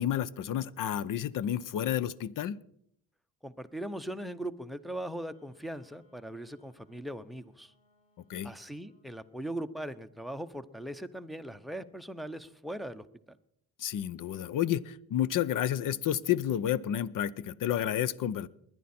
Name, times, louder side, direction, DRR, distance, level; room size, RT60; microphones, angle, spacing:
voice 1, 0.0-2.6 8.3-8.5 13.8-18.5, left 11 dB, 55° left, 20 dB, 0.7 m, -30 dB
voice 2, 3.4-7.7 8.4-13.4, right 1 dB, ahead, 14 dB, 0.7 m, -40 dB
Wind instrument woodwind instrument, 4.8-9.2, left 2 dB, 20° left, 3.9 m, -70 dB
20.0 x 10.5 x 4.3 m, 0.71 s
cardioid pair, 105°, 38 cm